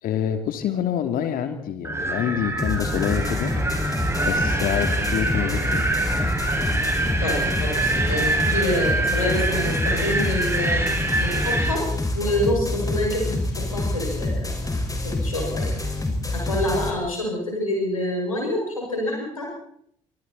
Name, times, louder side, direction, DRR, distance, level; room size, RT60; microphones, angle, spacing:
voice 1, 0.0-3.5 4.2-5.9, left 10 dB, 55° left, 8 dB, 3.3 m, -26 dB
Wind, 1.8-11.8, right 2 dB, 15° right, 6.9 m, -25 dB
sound 1, 2.6-16.9, left 2 dB, 20° left, 5.6 m, -27 dB
voice 2, 7.2-10.8 11.2-11.8 12.1-14.8 15.0-15.8 16.3-19.5, left 1 dB, 85° left, -1 dB, 6.7 m, -27 dB
27.5 x 25.5 x 4.3 m, 0.66 s
figure-of-eight pair, 45°, 17 cm